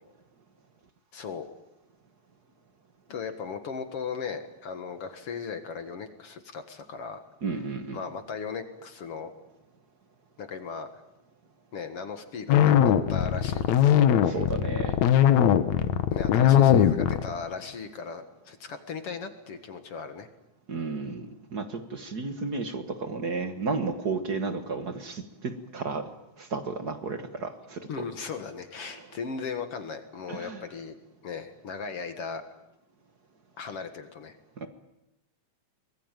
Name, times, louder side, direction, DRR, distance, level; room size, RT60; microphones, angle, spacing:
voice 1, 1.1-1.5 3.1-7.2 7.9-9.3 10.4-11.0 11.7-14.0 14.2-14.3 16.1-20.3 27.9-30.9 31.2-32.4 33.6-34.4, left 5 dB, 55° left, 7 dB, 2.4 m, -37 dB
voice 2, 7.4-8.0 14.2-15.0 16.4-16.5 20.7-26.1 26.4-28.0 28.8-29.1 30.3-30.6 34.6-34.7, right 4 dB, 40° right, 8 dB, 1.6 m, -33 dB
sound 1, 12.5-17.5, left 10 dB, 75° left, 2.4 m, -20 dB
24.5 x 21.5 x 9.1 m, 0.90 s
omnidirectional pair, 3.4 m